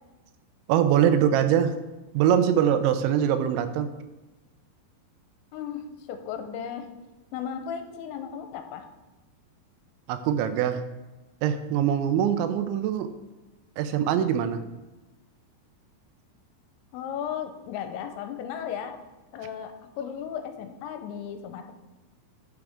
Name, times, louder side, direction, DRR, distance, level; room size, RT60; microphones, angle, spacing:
voice 1, 0.7-1.8 2.1-3.9 10.1-10.8 11.4-13.1 13.8-14.6, right 9 dB, 85° right, 10 dB, 2.9 m, -23 dB
voice 2, 5.5-6.9 7.3-8.9 16.9-18.9 19.3-21.7, left 8 dB, 90° left, 7 dB, 3.1 m, -35 dB
11.5 x 6.0 x 3.6 m, 1.1 s
omnidirectional pair, 5.3 m